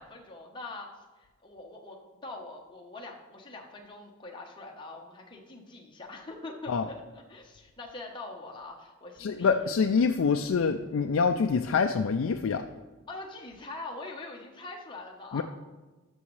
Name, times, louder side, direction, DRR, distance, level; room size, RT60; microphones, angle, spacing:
voice 1, 0.0-9.7 13.1-15.4, left 2 dB, 25° left, 0 dB, 1.0 m, -43 dB
voice 2, 9.2-12.6 15.3-15.4, left 5 dB, 75° left, 6 dB, 0.4 m, -25 dB
12.5 x 6.2 x 3.2 m, 1.2 s
head